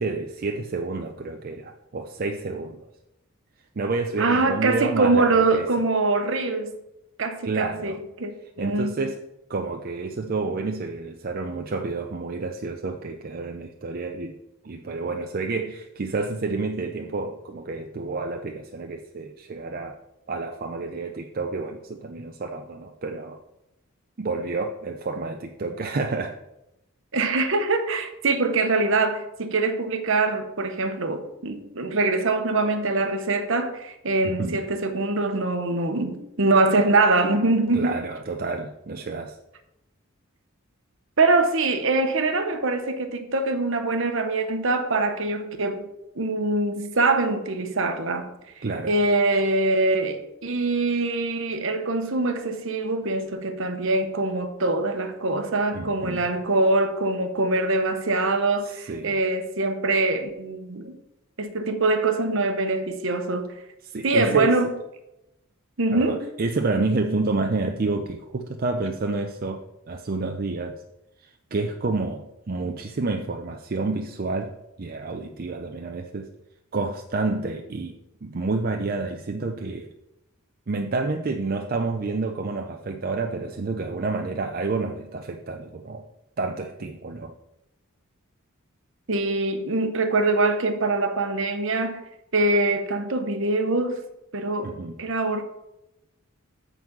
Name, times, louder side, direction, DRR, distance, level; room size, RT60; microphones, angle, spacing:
voice 1, 0.0-2.9 3.8-5.7 7.4-8.0 8.6-9.2 9.5-14.4 14.6-20.0 20.3-23.4 24.2-26.4 34.2-34.6 37.7-39.4 48.6-48.9 55.7-56.3 58.6-59.1 63.8-64.6 65.9-70.7 71.2-74.5 74.8-76.3 76.7-77.9 78.2-79.9 80.7-86.0 86.4-87.3 94.6-95.0, right 3 dB, 45° right, 0.5 m, -29 dB
voice 2, 4.2-6.7 7.2-7.9 8.2-9.1 27.1-38.0 41.2-45.8 46.2-48.3 48.6-61.0 61.4-63.5 64.0-64.7 65.8-66.2 89.1-92.0 92.3-94.0 94.3-95.4, right 2 dB, 60° right, 1.0 m, -23 dB
9.2 x 4.0 x 7.2 m
head